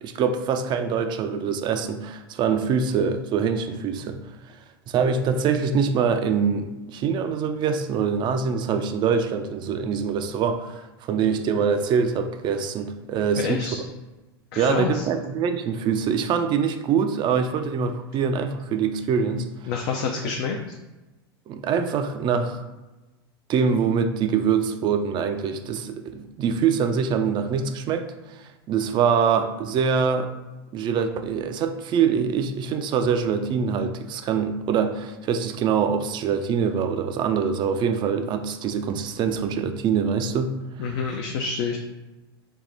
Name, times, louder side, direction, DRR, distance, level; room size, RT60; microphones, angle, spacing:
voice 1, 0.0-4.2 4.9-13.7 14.6-19.5 21.5-22.6 23.5-30.3 30.7-40.6, right 6 dB, 35° right, 8 dB, 0.4 m, -24 dB
voice 2, 13.4-13.8 14.5-15.1 19.7-20.6 40.8-41.8, left 5 dB, 55° left, 2 dB, 0.4 m, -27 dB
3.5 x 2.2 x 3.8 m, 1.1 s
hypercardioid pair, 100°, 13 cm